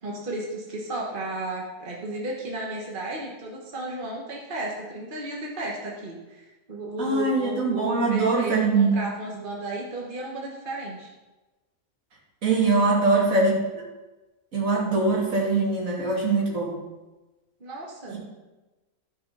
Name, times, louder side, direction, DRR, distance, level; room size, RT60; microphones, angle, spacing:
voice 1, 0.0-6.4 6.7-11.1 13.0-13.3 17.6-18.2, right 2 dB, 35° right, -2 dB, 1.5 m, -33 dB
voice 2, 7.0-9.0 12.4-13.6 14.5-16.7 18.1-18.2, right 3 dB, 60° right, -3 dB, 2.6 m, -22 dB
12.5 x 4.9 x 5.5 m, 1.1 s
omnidirectional pair, 1.6 m